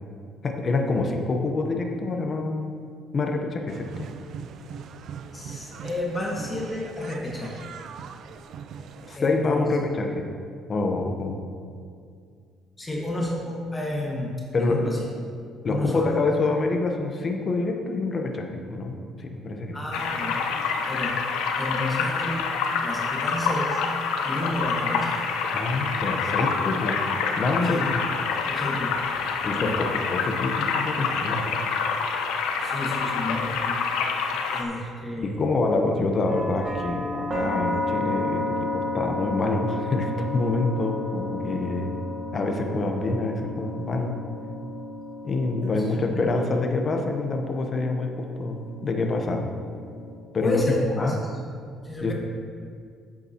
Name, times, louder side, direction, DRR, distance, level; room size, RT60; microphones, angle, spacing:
voice 1, 0.4-4.1 9.0-10.2 10.7-11.4 14.5-14.9 15.6-19.8 25.5-27.0 27.4-28.0 29.4-31.4 35.2-42.0 42.3-44.2 45.2-49.5 50.3-51.2 52.0-52.1, left 3 dB, 40° left, 3 dB, 1.0 m, -26 dB
sound 1, 3.7-9.2, right 6 dB, 65° right, 0.5 m, -41 dB
voice 2, 5.3-7.7 9.2-9.7 12.8-14.3 14.7-15.0 15.7-16.4 19.7-20.4 20.8-21.2 21.6-22.4 22.8-23.8 24.2-25.2 27.6-27.8 28.5-29.0 29.5-29.7 32.6-33.7 34.5-35.4 45.6-45.7 46.1-46.5 50.4-51.1 51.8-52.1, left 1 dB, 20° left, -3 dB, 1.6 m, -31 dB
sound 2, 19.9-34.6, left 5 dB, 85° left, 0.8 m, -27 dB
sound 3, 36.3-50.2, left 2 dB, 40° right, 2.0 m, -33 dB
10.5 x 8.3 x 3.0 m, 2.2 s
cardioid pair, 100°, 0 cm